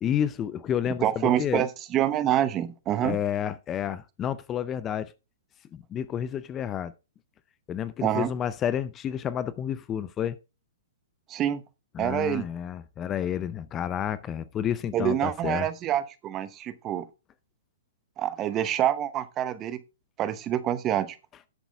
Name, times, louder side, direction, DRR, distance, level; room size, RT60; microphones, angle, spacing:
voice 1, 0.0-1.6 3.0-5.1 5.7-6.9 7.7-10.4 11.9-15.7, left 9 dB, 20° left, 0.5 m, -30 dB
voice 2, 1.0-3.2 8.0-8.3 11.3-11.6 12.0-12.5 14.9-17.0 18.2-19.8 20.2-21.2, right 11 dB, 25° right, 0.9 m, -26 dB
10.5 x 8.0 x 3.5 m
hypercardioid pair, 140°, 0 cm